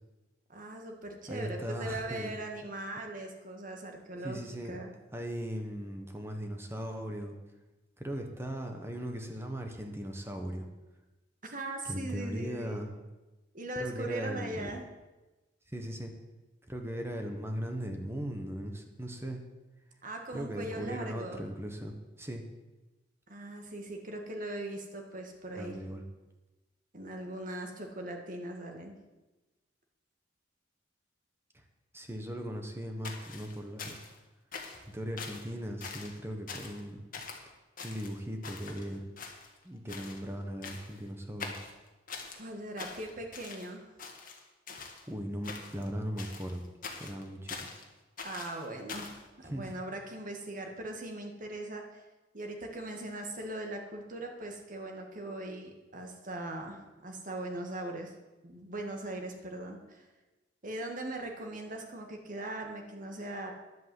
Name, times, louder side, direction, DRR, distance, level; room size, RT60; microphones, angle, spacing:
voice 1, 0.5-4.9 11.4-12.8 13.5-14.9 20.0-21.4 23.3-25.8 26.9-29.0 42.4-43.9 48.2-52.0 52.3-58.1 58.4-60.0 60.6-63.5, right 1 dB, 45° right, 3 dB, 1.9 m, -40 dB
voice 2, 1.3-2.3 4.2-4.8 5.1-7.3 8.0-10.7 11.8-12.9 13.7-14.7 15.7-16.1 16.7-19.4 20.3-22.4 25.6-26.0 31.9-34.0 34.7-37.0 37.8-39.0 39.6-41.5 44.8-46.6 47.0-47.7 49.4-49.7, equal, 15° right, 3 dB, 1.3 m, -38 dB
sound 1, 33.0-34.2 34.5-34.9 35.2-35.5 35.8-36.2 36.5-36.8 37.1-37.4 37.8-38.9 39.2-39.6 39.9-40.2 40.6-41.0 41.4-42.4 42.8-43.7 44.0-45.0 45.4-45.9 46.2-47.8 48.2-49.2, left 4 dB, 50° left, 1.8 m, -43 dB
11.0 x 8.3 x 7.8 m, 1.1 s
head